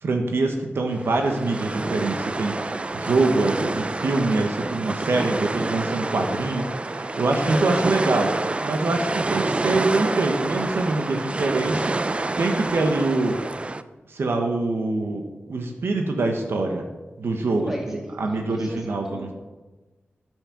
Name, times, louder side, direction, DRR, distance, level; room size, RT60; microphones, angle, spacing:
voice 1, 0.0-11.9 12.4-13.4 14.1-16.8 17.2-17.7 18.2-19.3, right 2 dB, 75° right, 3 dB, 1.2 m, -24 dB
sound 1, 0.9-13.8, right 2 dB, 30° right, 0.4 m, -28 dB
voice 2, 7.4-7.8 17.5-19.3, equal, 10° right, -1 dB, 2.4 m, -37 dB
9.1 x 7.7 x 5.9 m, 1.2 s
wide cardioid pair, 90°, 4 cm